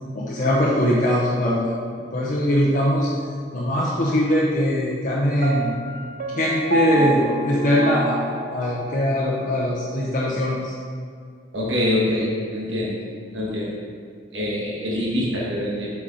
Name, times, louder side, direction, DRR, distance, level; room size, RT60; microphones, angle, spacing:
voice 1, 0.1-1.8 2.1-3.1 3.5-5.7 6.3-8.2 8.5-10.7, left 1 dB, 45° left, -5 dB, 0.8 m, -21 dB
Piano, 5.4-9.3, right 3 dB, 50° right, 0.4 m, -28 dB
voice 2, 11.5-13.0 13.3-13.8 14.3-15.9, left 1 dB, 80° right, -5 dB, 1.3 m, -24 dB
7.7 x 4.6 x 3.9 m, 2.1 s
head